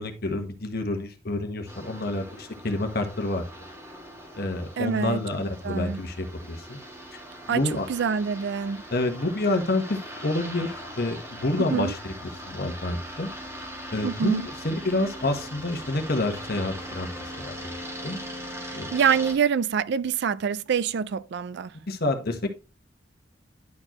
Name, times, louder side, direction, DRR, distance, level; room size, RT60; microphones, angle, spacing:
voice 1, 0.0-3.7 4.3-6.8 7.5-7.8 8.9-12.1 12.5-13.3 13.9-17.7 18.0-18.2 18.7-18.9 21.9-22.5, left 2 dB, 55° left, 1.2 m, -28 dB
sound 1, 1.7-19.3, equal, 15° right, 1.7 m, -40 dB
voice 2, 4.8-6.0 7.5-8.8 11.6-11.9 14.0-14.5 18.6-21.8, right 7 dB, 60° right, 0.4 m, -26 dB
11.0 x 4.4 x 3.0 m
head